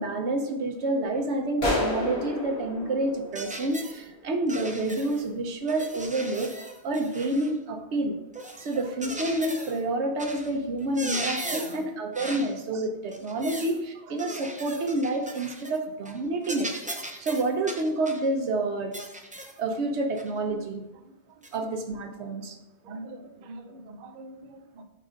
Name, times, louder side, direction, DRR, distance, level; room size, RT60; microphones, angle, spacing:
voice 1, 0.0-6.5 6.8-8.2 8.6-16.7 17.2-18.9 19.6-20.8 21.5-22.6, right 2 dB, 85° right, 5 dB, 1.1 m, -28 dB
sound 1, 1.6-4.2, left 1 dB, 65° left, 1.8 m, -30 dB
sound 2, 3.3-4.0 4.5-5.3 5.7-7.6 8.3-9.8 10.2-10.5 10.8-11.8 12.1-12.5 13.1-13.8 14.2-15.8 16.1-16.2 16.4-18.3 18.9-19.6 20.2-20.3 21.4-21.6, right 1 dB, 10° right, 0.4 m, -38 dB
voice 2, 11.4-11.8 12.7-12.8 20.6-20.7 21.0-21.1 22.8-24.8, right 2 dB, 55° right, 5 dB, 0.7 m, -44 dB
5.9 x 3.8 x 5.0 m, 0.95 s
omnidirectional pair, 1.1 m